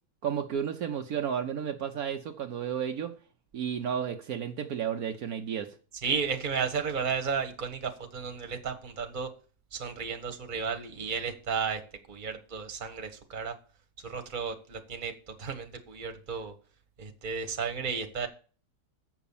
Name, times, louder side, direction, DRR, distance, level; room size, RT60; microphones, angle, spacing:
voice 1, 0.2-3.1 3.5-5.7, right 8 dB, 65° right, 4 dB, 1.3 m, -32 dB
voice 2, 6.0-9.3 9.7-11.8 12.1-13.5 14.0-16.5 17.0-18.3, right 6 dB, 30° right, 6 dB, 1.3 m, -33 dB
7.9 x 6.1 x 7.1 m, 0.39 s
omnidirectional pair, 1.7 m